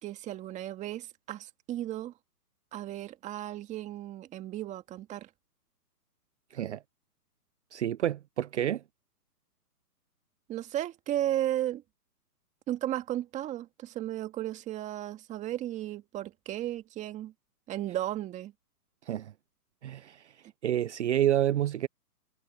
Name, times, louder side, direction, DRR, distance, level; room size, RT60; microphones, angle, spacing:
voice 1, 0.0-2.1 2.7-5.3 10.5-11.8 12.7-17.3 17.7-18.5, right 13 dB, 15° right, 1.9 m, -34 dB
voice 2, 6.5-6.8 7.7-8.8 19.0-19.3 19.8-21.9, right 11 dB, 45° right, 0.8 m, -29 dB
hypercardioid pair, 145°, 47 cm